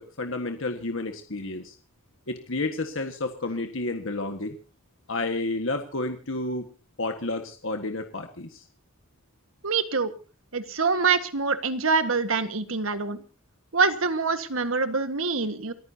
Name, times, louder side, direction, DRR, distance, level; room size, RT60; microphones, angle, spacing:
voice 1, 0.0-1.8 2.3-4.6 5.1-6.7 7.0-8.7, left 2 dB, 65° left, 5 dB, 1.7 m, -31 dB
voice 2, 9.6-10.1 10.5-13.2 13.7-15.7, right 4 dB, 75° right, 10 dB, 1.7 m, -25 dB
28.5 x 14.5 x 2.9 m, 0.34 s
head